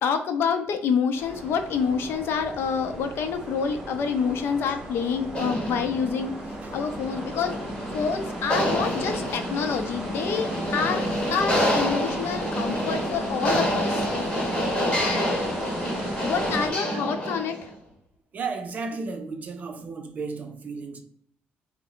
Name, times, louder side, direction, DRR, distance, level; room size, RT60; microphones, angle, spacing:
voice 1, 0.0-6.3 6.7-7.6 7.9-14.1 16.2-17.7, left 6 dB, 70° left, 0.5 m, -27 dB
sound 1, 1.1-16.7, right 1 dB, 15° right, 0.8 m, -38 dB
sound 2, 5.3-17.6, equal, 25° left, 1.4 m, -28 dB
voice 2, 14.8-15.5 16.9-17.1 18.3-21.0, right 4 dB, 40° right, 0.5 m, -35 dB
4.1 x 2.1 x 3.8 m
cardioid pair, 145°, 4 cm